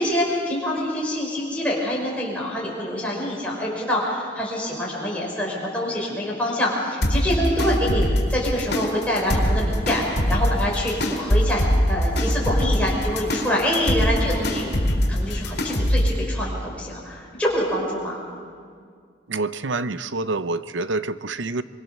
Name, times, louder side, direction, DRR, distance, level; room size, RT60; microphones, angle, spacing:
voice 1, 0.0-14.7 15.1-18.2, equal, 5° left, -4 dB, 5.6 m, -26 dB
sound 1, 7.0-16.2, equal, 60° left, 4.0 m, -23 dB
voice 2, 19.3-21.6, right 3 dB, 80° right, 13 dB, 0.8 m, -27 dB
24.5 x 23.0 x 6.9 m, 2.1 s
head